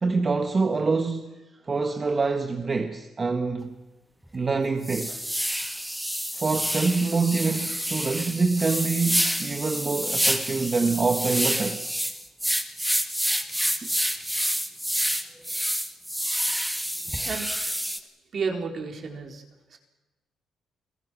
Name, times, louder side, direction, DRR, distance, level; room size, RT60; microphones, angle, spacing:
voice 1, 0.0-1.4 1.6-3.7 4.3-5.2 6.3-11.9, right 4 dB, 35° right, 1.5 m, -25 dB
sound 1, 3.6-3.7 4.2-4.3 4.8-18.0, equal, ahead, 1.9 m, -28 dB
voice 2, 18.3-19.4 19.7-19.8, right 5 dB, 55° right, 4.1 m, -31 dB
29.0 x 16.5 x 6.2 m
cardioid pair, 90°, 0 cm